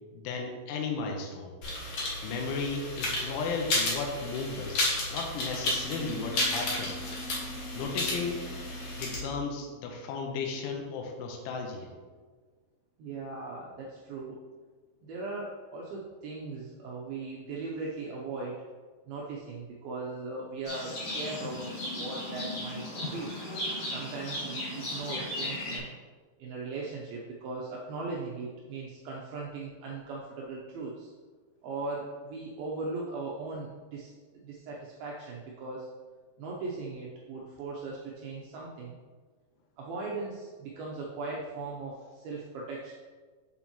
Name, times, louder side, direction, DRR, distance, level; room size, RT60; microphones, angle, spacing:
voice 1, 0.1-1.5 2.2-7.0 7.7-8.4 9.0-11.9, left 4 dB, 85° left, 1 dB, 3.3 m, -35 dB
sound 1, 1.6-9.2, left 2 dB, 60° left, 1.8 m, -32 dB
sound 2, 5.5-11.5, left 2 dB, 60° right, 2.0 m, -47 dB
voice 2, 13.0-14.4 15.0-18.6 19.1-21.6 22.0-23.4 23.9-26.0 26.4-31.1 31.6-35.9 36.4-39.0 39.8-42.9, right 3 dB, 90° right, -3 dB, 2.1 m, -38 dB
Livestock farm animals working animals, 20.7-25.8, left 1 dB, 40° left, 2.7 m, -36 dB
8.2 x 7.1 x 3.0 m, 1.4 s
omnidirectional pair, 5.4 m